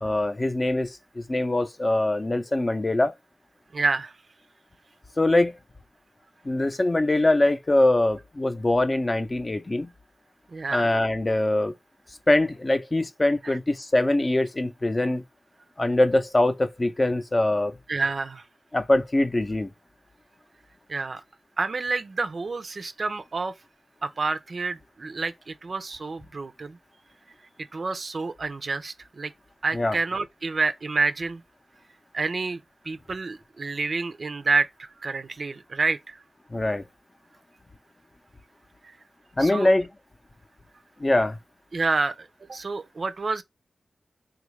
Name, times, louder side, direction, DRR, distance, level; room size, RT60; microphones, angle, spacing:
voice 1, 0.0-3.1 5.2-5.5 6.4-9.9 10.7-11.7 12.3-15.2 15.8-17.7 18.7-19.7 29.7-30.0 36.5-36.8 39.4-39.9 41.0-41.4, left 2 dB, 35° left, 0.6 m, -23 dB
voice 2, 3.7-4.1 10.5-10.9 13.4-13.6 17.9-18.4 20.9-21.2 21.6-23.6 24.0-26.8 27.7-29.3 29.6-31.4 32.1-36.2 38.8-39.0 39.4-39.7 41.7-43.4, right 3 dB, 60° right, 0.5 m, -28 dB
3.4 x 2.4 x 3.1 m
cardioid pair, 50°, 0 cm